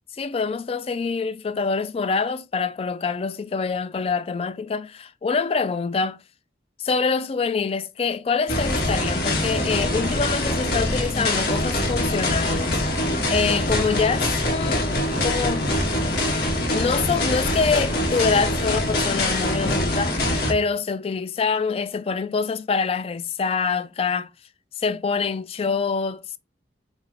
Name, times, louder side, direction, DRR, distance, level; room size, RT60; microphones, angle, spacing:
voice 1, 0.2-6.2 6.8-15.7 16.7-24.3 24.8-26.4, left 5 dB, 30° left, 0.3 m, -25 dB
sound 1, 8.5-20.5, left 1 dB, 55° left, 1.4 m, -24 dB
5.2 x 2.1 x 4.8 m
head